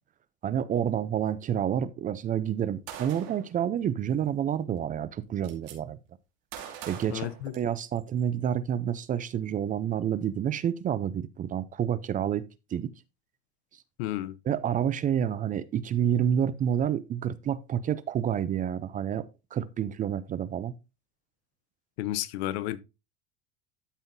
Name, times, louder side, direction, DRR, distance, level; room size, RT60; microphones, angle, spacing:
voice 1, 0.4-6.0 6.9-7.3 7.5-12.4 12.7-12.9 14.5-19.2 19.5-20.7, right 9 dB, 25° right, 0.5 m, -29 dB
Gunshot gunfire, 2.9-3.5 4.7-4.8 5.0-5.8 6.5-8.0, right 9 dB, 65° right, 2.6 m, -42 dB
voice 2, 7.1-7.5 14.0-14.3 22.0-22.8, left 14 dB, 75° left, 0.9 m, -32 dB
12.5 x 5.6 x 2.7 m
supercardioid pair, 140°, 31 cm